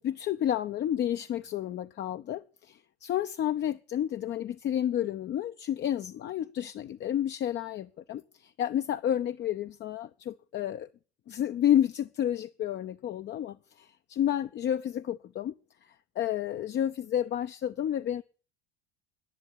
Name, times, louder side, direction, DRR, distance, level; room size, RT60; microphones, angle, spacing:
voice 1, 0.0-10.9 11.3-15.5 16.2-18.2, left 10 dB, 35° left, 0.7 m, -30 dB
11.0 x 10.5 x 8.4 m
hypercardioid pair, 75°, 31 cm